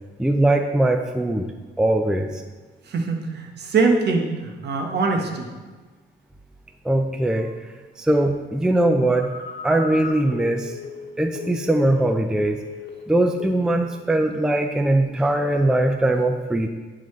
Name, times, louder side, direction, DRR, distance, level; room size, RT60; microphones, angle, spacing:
voice 1, 0.2-1.5 1.8-2.4 6.8-7.5 8.0-9.3 9.6-10.7 11.2-12.6 13.1-16.7, right 1 dB, 5° right, 5 dB, 0.4 m, -21 dB
voice 2, 2.9-5.5, right 4 dB, 55° right, 3 dB, 1.1 m, -23 dB
Telephone, 9.1-12.1 12.4-13.1 13.4-13.7, left 8 dB, 60° left, 1.1 m, -36 dB
10.5 x 3.9 x 3.2 m, 1.3 s
cardioid pair, 90°, 20 cm